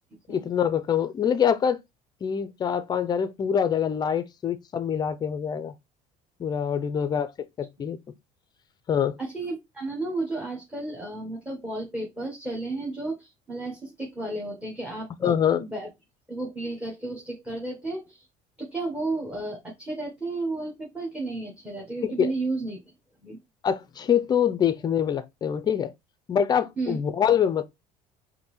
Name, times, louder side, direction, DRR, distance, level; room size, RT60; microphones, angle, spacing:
voice 1, 0.3-1.8 2.2-5.7 6.4-8.0 8.9-9.1 15.2-15.6 22.0-22.3 23.6-25.9 26.3-27.6, left 8 dB, 25° left, 0.4 m, -25 dB
voice 2, 9.2-15.9 16.3-18.3 18.6-22.8 23.2-23.4 26.8-27.0, right 2 dB, 10° right, 1.0 m, -33 dB
5.2 x 2.6 x 3.0 m
cardioid pair, 145°, 16 cm